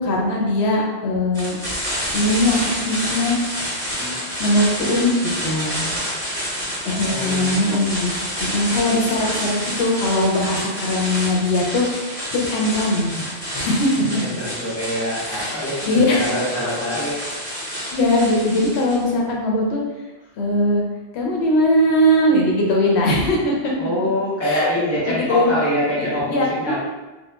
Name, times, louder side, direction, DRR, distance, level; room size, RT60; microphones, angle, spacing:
voice 1, 0.0-1.6 2.1-3.4 4.4-5.9 6.8-8.1 8.4-13.2 13.5-13.9 15.2-16.3 17.9-19.8 20.4-20.8 21.1-23.7 24.4-24.7 25.1-25.5 26.3-26.8, left 1 dB, 80° left, -2 dB, 0.8 m, -20 dB
sound 1, 1.3-19.0, equal, 35° left, 1.5 m, -28 dB
voice 2, 6.7-7.7 14.1-17.2 23.8-26.8, left 1 dB, 15° left, -9 dB, 0.7 m, -25 dB
2.9 x 2.2 x 2.2 m, 1.1 s
omnidirectional pair, 1.1 m